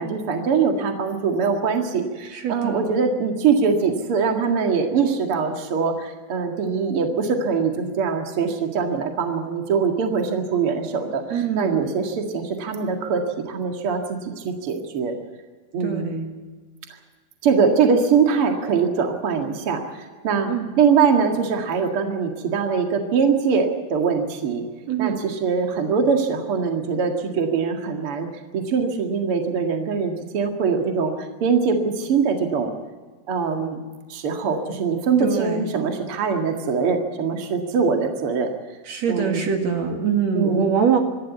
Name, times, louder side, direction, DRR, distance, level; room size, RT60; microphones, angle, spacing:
voice 1, 0.0-15.2 15.7-16.4 17.4-20.5 20.8-24.6 25.0-28.3 28.5-32.7 33.3-33.8 34.1-38.5 39.1-39.5 40.3-40.7, right 5 dB, 80° right, 3 dB, 1.2 m, -22 dB
voice 2, 2.3-2.9 11.3-11.8 15.8-16.2 20.5-20.7 24.9-25.2 35.2-35.6 38.9-41.0, right 6 dB, 60° right, 3 dB, 1.9 m, -23 dB
25.5 x 12.5 x 8.4 m, 1.4 s
omnidirectional pair, 5.9 m